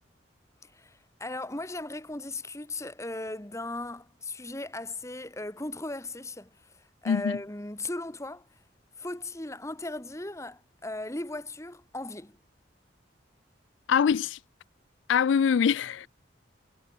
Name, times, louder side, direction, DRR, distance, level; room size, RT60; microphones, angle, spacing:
voice 1, 0.6-8.5 9.0-12.4, left 2 dB, 15° left, 1.8 m, -37 dB
voice 2, 7.1-7.4 13.9-14.4 15.1-16.1, left 7 dB, 75° left, 0.3 m, -24 dB
head